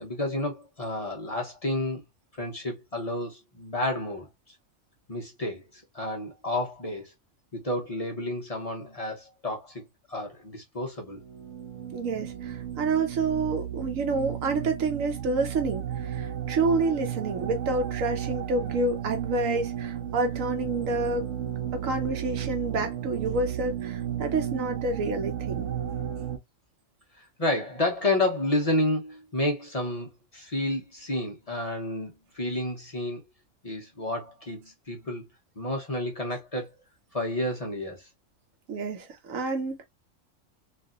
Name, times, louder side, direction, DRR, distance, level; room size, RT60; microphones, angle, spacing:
voice 1, 0.0-2.0 2.4-4.3 5.1-7.1 7.5-11.2 27.2-33.2 33.6-35.2 35.6-36.7 37.1-38.1, left 1 dB, 35° left, 0.8 m, -30 dB
sound 1, 11.1-26.4, right 10 dB, 70° right, 0.9 m, -33 dB
voice 2, 11.9-21.3 21.7-25.7 38.7-39.8, right 3 dB, 85° right, 1.2 m, -28 dB
3.2 x 2.6 x 2.4 m
omnidirectional pair, 1.3 m